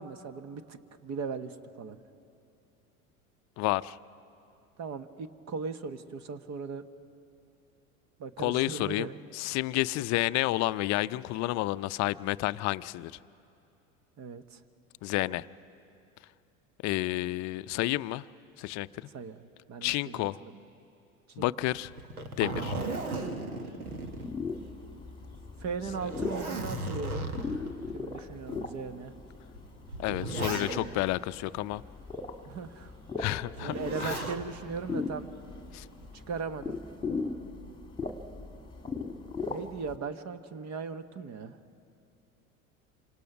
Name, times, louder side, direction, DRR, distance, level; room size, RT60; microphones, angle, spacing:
voice 1, 0.0-2.0 4.8-6.8 8.2-9.2 14.2-14.6 19.1-19.4 19.7-20.6 21.4-21.5 25.6-27.3 27.9-29.1 30.4-31.0 32.4-32.9 33.6-35.3 36.1-36.8 39.5-41.6, right 5 dB, 40° right, 11 dB, 1.2 m, -38 dB
voice 2, 3.6-4.0 8.4-13.1 15.0-15.5 16.8-18.2 18.6-18.9 19.8-20.4 21.4-21.9 22.4-22.8 30.0-31.8 33.2-33.7 34.0-34.2 35.7-35.8, left 18 dB, 40° left, 16 dB, 0.5 m, -30 dB
Zipper (clothing), 21.9-24.8 25.2-25.3 25.9-27.7 28.5-28.6 29.5-31.1 33.5-34.4 35.8-36.3, right 2 dB, 90° right, 1.7 m, -36 dB
sound 1, 23.8-40.0, left 4 dB, 10° left, 1.8 m, -39 dB
27.0 x 25.5 x 6.0 m, 2.6 s
hypercardioid pair, 80°, 43 cm